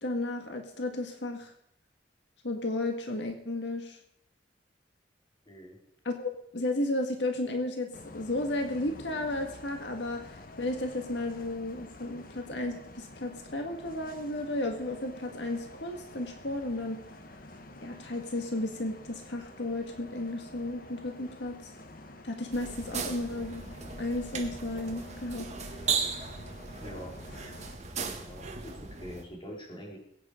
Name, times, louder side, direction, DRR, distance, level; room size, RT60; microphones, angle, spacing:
voice 1, 0.0-1.5 2.4-4.0 6.0-7.9 8.1-17.0 17.8-21.7 22.2-23.6 24.0-25.5, left 2 dB, 90° left, 4 dB, 1.8 m, -33 dB
voice 2, 5.5-5.8 26.8-27.1 28.0-30.0, equal, 30° left, -3 dB, 4.3 m, -44 dB
Bus, 7.9-27.7, left 1 dB, 55° left, 1.2 m, -48 dB
sound 1, 22.5-29.2, right 5 dB, 40° right, 1.8 m, -37 dB
21.5 x 9.3 x 5.1 m, 0.73 s
head